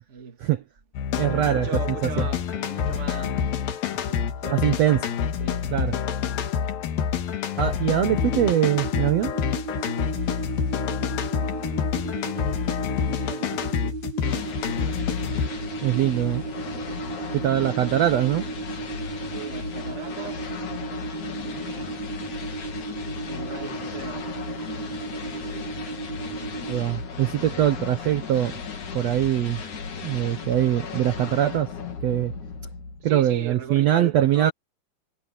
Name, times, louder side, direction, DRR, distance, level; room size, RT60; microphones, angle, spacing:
voice 1, 0.1-0.4 1.3-3.6 3.9-6.1 10.0-10.9 11.3-12.5 12.9-14.0 15.9-16.3 16.7-17.9 19.3-20.5 21.4-22.0 23.2-24.9 26.1-26.7 27.3-27.7 33.0-34.5, right 6 dB, 25° right, 1.7 m, -40 dB
sound 1, 0.9-15.5, left 8 dB, 80° left, 3.4 m, -27 dB
voice 2, 1.2-1.7 2.2-2.3 4.5-5.0 5.7-5.9 7.6-9.3 15.8-16.4 17.3-18.5 26.7-28.5 28.9-29.6 30.0-31.7 32.0-32.3 33.0-34.5, right 12 dB, 65° right, 1.8 m, -22 dB
sound 2, 8.1-26.8, right 5 dB, 90° right, 4.3 m, -35 dB
sound 3, 14.2-33.2, left 5 dB, 60° left, 4.2 m, -36 dB
omnidirectional pair, 4.1 m